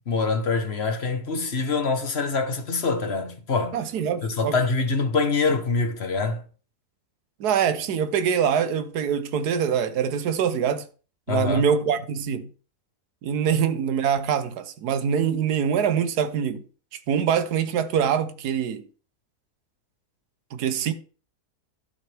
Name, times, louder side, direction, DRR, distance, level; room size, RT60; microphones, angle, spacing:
voice 1, 0.1-3.8 4.2-6.4 11.3-11.6, left 4 dB, 45° left, 1.4 m, -25 dB
voice 2, 3.7-4.6 7.4-10.8 11.3-12.5 13.2-16.6 17.1-18.9 20.5-20.9, right 8 dB, 85° right, 1.4 m, -24 dB
12.0 x 7.0 x 3.4 m
omnidirectional pair, 1.7 m